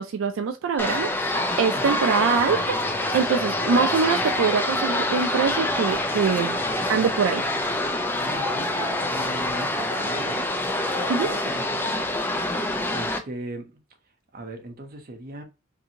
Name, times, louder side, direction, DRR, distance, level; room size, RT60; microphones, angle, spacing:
voice 1, 0.0-6.6 6.9-7.4 11.1-11.3, right 6 dB, 80° right, 0.3 m, -24 dB
sound 1, 0.8-13.2, left 1 dB, 10° left, 0.3 m, -26 dB
Mirage on Mars, 2.3-7.8, left 1 dB, 50° left, 1.5 m, -45 dB
voice 2, 8.1-10.5 11.2-12.1 12.9-13.7 14.3-15.4, right 1 dB, 50° right, 0.7 m, -38 dB
2.7 x 2.6 x 2.7 m
head